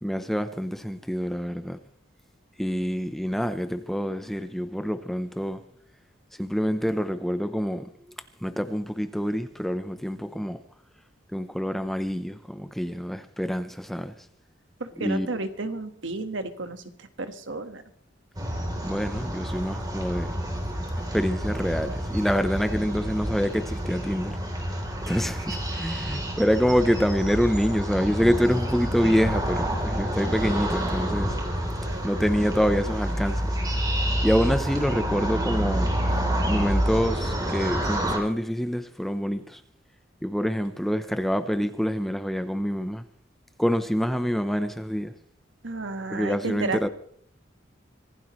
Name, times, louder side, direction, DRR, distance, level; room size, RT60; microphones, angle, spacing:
voice 1, 0.0-1.8 2.6-5.6 6.4-7.9 8.4-10.6 11.3-14.1 15.0-15.4 18.8-20.4 21.1-24.4 25.1-31.3 32.0-33.6 34.2-35.9 36.5-39.6 40.2-43.0 43.6-45.1 46.1-46.9, equal, ahead, 0.7 m, -26 dB
voice 2, 14.8-16.8 17.2-17.8 31.8-32.5 45.6-46.8, right 3 dB, 70° right, 1.5 m, -32 dB
sound 1, 18.4-38.2, equal, 20° right, 3.4 m, -28 dB
25.0 x 16.5 x 3.2 m
head